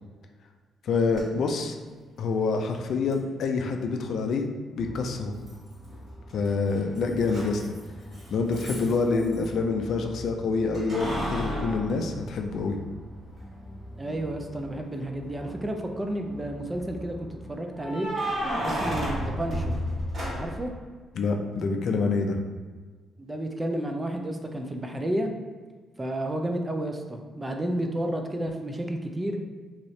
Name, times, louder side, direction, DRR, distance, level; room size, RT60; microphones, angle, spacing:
voice 1, 0.8-1.7 2.2-4.5 4.8-5.3 6.3-7.7 8.3-12.8 21.2-22.4, left 4 dB, 65° left, 4 dB, 0.4 m, -26 dB
Keys jangling, 1.1-1.2 3.1-3.2 5.5-6.0 6.3-9.5 10.7-12.9 13.4-13.5 15.2-15.8 17.7-20.7, equal, 45° right, 1.4 m, -32 dB
sound 1, 4.7-17.6, equal, 10° left, 0.8 m, -45 dB
voice 2, 14.0-18.1 18.6-19.8 20.3-20.7 23.2-25.3 26.0-29.4, right 1 dB, 15° right, 4 dB, 0.4 m, -31 dB
2.7 x 2.6 x 3.1 m, 1.5 s
cardioid pair, 90°, 0 cm